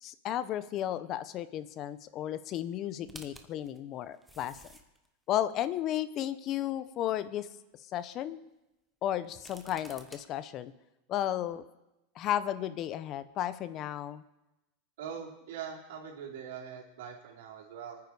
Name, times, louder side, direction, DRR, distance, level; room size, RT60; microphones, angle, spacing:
voice 1, 0.0-4.6 5.3-7.5 7.9-8.4 9.0-10.7 11.1-11.6 12.2-14.2, left 11 dB, 35° left, 14 dB, 0.7 m, -33 dB
sound 1, 3.0-5.1 5.8-5.9 9.2-10.2, right 1 dB, ahead, 1.1 m, -51 dB
voice 2, 15.0-18.0, right 7 dB, 80° right, -1 dB, 4.0 m, -42 dB
25.0 x 9.6 x 4.8 m, 0.94 s
supercardioid pair, 155°, 0 cm